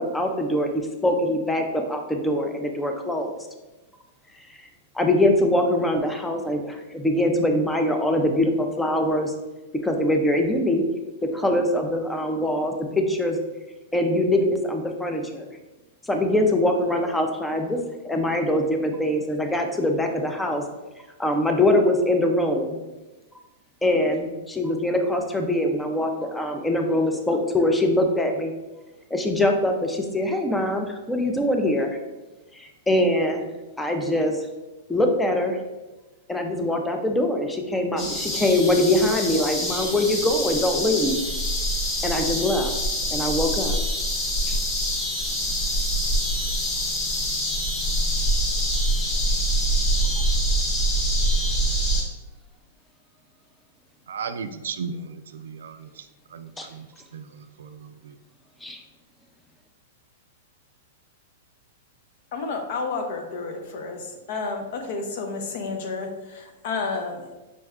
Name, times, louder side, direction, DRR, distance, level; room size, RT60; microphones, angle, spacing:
voice 1, 0.0-3.3 4.9-9.3 9.8-10.9 11.2-13.4 13.9-15.5 16.0-17.8 18.0-20.7 21.2-22.8 23.8-28.5 29.1-32.0 32.5-33.5 33.8-34.4 34.9-35.6 36.3-41.2 42.0-42.7 43.1-43.8 44.4-44.6 49.8-49.9 56.6-56.7 58.6-58.8, left 1 dB, 5° left, 4 dB, 0.5 m, -23 dB
sound 1, 38.0-52.0, equal, 25° left, 1.0 m, -25 dB
voice 2, 54.1-55.9 56.3-56.9 57.1-58.1, right 5 dB, 90° right, 10 dB, 0.3 m, -35 dB
voice 3, 62.3-67.3, left 4 dB, 55° left, 4 dB, 0.7 m, -31 dB
5.2 x 2.2 x 3.5 m, 1.1 s
hypercardioid pair, 145°, 0 cm